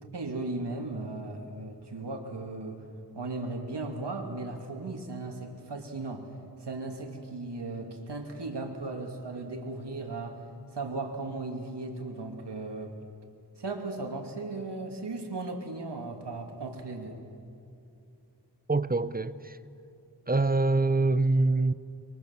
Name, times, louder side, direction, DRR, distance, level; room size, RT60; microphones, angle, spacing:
voice 1, 0.1-2.8 3.1-6.3 6.6-10.4 10.7-12.9 13.6-17.2, right 2 dB, 75° right, 2.7 m, -36 dB
voice 2, 18.7-19.3 20.3-21.7, right 3 dB, 20° right, 0.7 m, -24 dB
24.0 x 22.5 x 7.2 m
wide cardioid pair, 75°, 41 cm